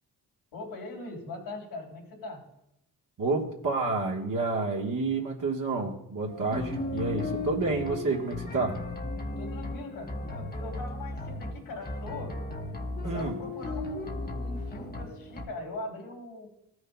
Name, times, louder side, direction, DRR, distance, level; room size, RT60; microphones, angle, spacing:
voice 1, 0.5-2.4 9.4-12.4 13.0-16.5, left 2 dB, 90° left, -4 dB, 3.3 m, -41 dB
voice 2, 3.2-8.8 13.0-13.4, right 3 dB, 50° right, -2 dB, 1.5 m, -29 dB
sound 1, 6.3-15.5, left 2 dB, 20° left, 1.1 m, -35 dB
13.5 x 6.4 x 2.3 m, 0.81 s
supercardioid pair, 55°, 41 cm